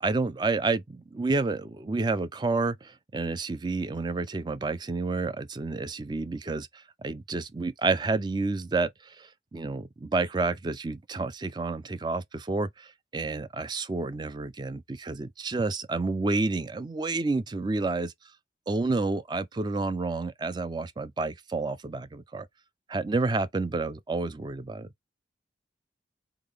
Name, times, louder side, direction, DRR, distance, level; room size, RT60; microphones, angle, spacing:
voice 1, 0.0-18.1 18.7-22.5 22.9-24.9, right 3 dB, 25° right, 0.3 m, -30 dB
3.9 x 3.7 x 3.2 m
head